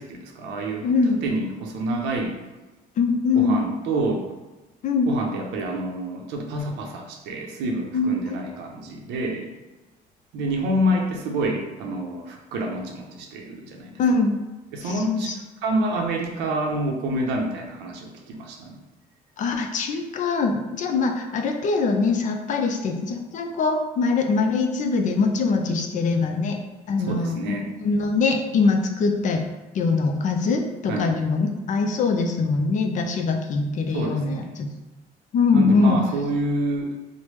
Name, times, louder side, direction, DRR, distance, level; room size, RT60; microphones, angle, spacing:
voice 1, 0.0-0.9 1.2-2.4 3.3-4.2 5.1-9.5 10.3-13.9 14.7-15.3 15.6-18.8 27.0-27.7 30.9-31.1 33.9-34.5 35.5-36.9, right 1 dB, 90° right, 1 dB, 0.6 m, -28 dB
voice 2, 0.8-1.2 3.0-3.6 4.8-5.1 7.9-8.4 14.0-14.3 14.8-15.3 15.8-15.9 19.4-26.6 26.9-29.5 29.7-34.7 35.3-36.0, left 4 dB, 50° left, 4 dB, 0.4 m, -23 dB
3.2 x 2.1 x 3.1 m, 1.1 s
cardioid pair, 110°, 17 cm